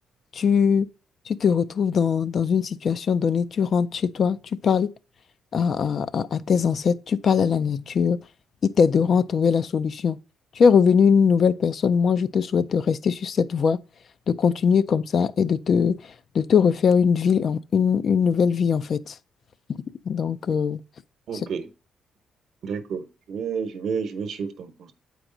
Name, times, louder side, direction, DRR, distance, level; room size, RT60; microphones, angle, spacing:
voice 1, 0.3-0.9 1.3-4.4 4.6-4.9 5.5-8.2 8.6-10.2 10.6-13.8 14.3-16.0 16.3-19.1 20.1-20.8, left 6 dB, 55° left, 0.4 m, -21 dB
voice 2, 21.3-21.7 22.6-24.9, right 6 dB, 70° right, 0.9 m, -30 dB
8.0 x 4.6 x 3.8 m
cardioid pair, 90°, 0 cm